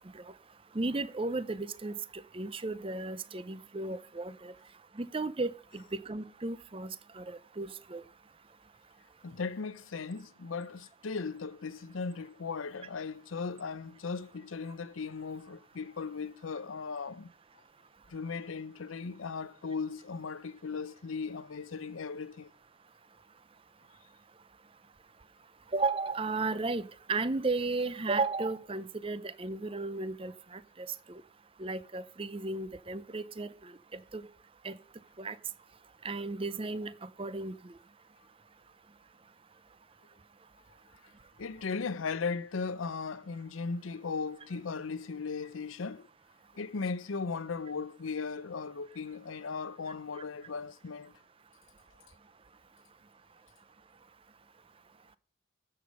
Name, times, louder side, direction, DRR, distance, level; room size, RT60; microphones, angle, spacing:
voice 1, 0.7-4.5 5.0-8.0 25.7-31.2 31.6-34.2 34.6-34.8 35.2-35.4 36.0-37.6, right 3 dB, 25° right, 0.6 m, -34 dB
voice 2, 9.2-17.3 18.1-22.5 41.4-46.1 46.5-51.1, left 4 dB, 90° left, 0.6 m, -37 dB
13.5 x 7.8 x 5.3 m
head